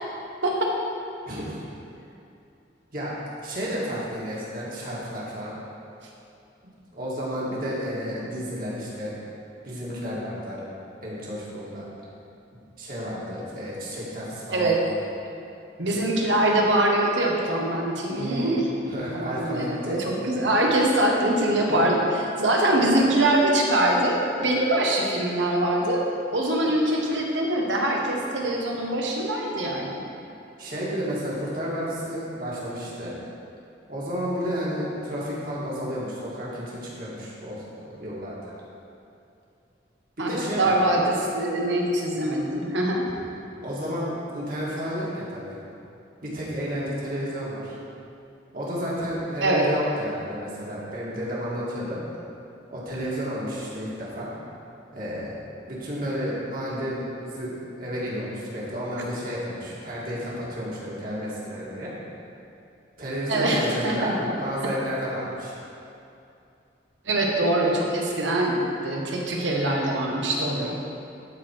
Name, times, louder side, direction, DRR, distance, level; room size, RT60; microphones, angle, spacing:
voice 1, 1.3-1.6 2.9-3.1 3.4-5.6 6.9-9.2 9.6-10.6 11.0-11.9 12.5-14.8 18.2-18.6 18.9-20.1 21.7-21.8 30.6-33.1 33.9-38.4 40.2-40.8 43.6-45.6 46.2-47.7 48.5-52.0 52.7-54.3 54.9-61.9 63.0-65.6, equal, 50° right, -7 dB, 2.1 m, -31 dB
voice 2, 15.8-18.7 19.1-22.0 22.4-26.0 26.3-30.0 40.2-40.3 40.6-43.0 49.4-49.7 63.3-64.3 67.1-70.8, right 1 dB, 85° right, -1 dB, 1.3 m, -23 dB
13.0 x 4.5 x 4.6 m, 2.6 s
head